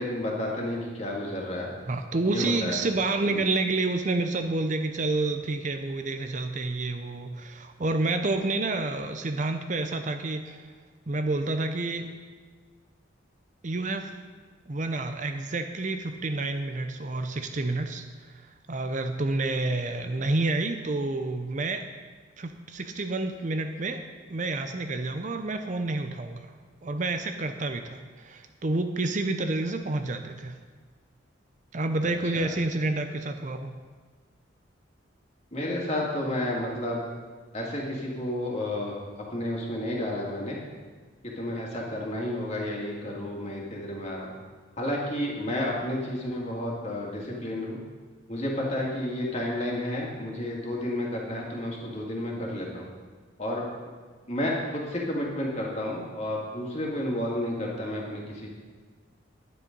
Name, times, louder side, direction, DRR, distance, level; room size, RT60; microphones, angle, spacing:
voice 1, 0.0-1.7 2.3-2.8 3.3-3.4 32.0-32.5 35.5-37.0 37.5-39.0 39.3-40.6 41.2-44.3 44.8-47.8 48.3-52.8 53.4-53.6 54.3-58.5, left 1 dB, 35° left, -2 dB, 2.4 m, -31 dB
voice 2, 1.9-10.6 11.1-12.1 13.6-14.1 14.7-18.0 18.7-21.9 22.4-24.0 24.3-26.5 26.8-30.6 31.7-33.8, right 2 dB, 40° right, 7 dB, 0.6 m, -29 dB
10.5 x 10.0 x 5.3 m, 1.5 s
head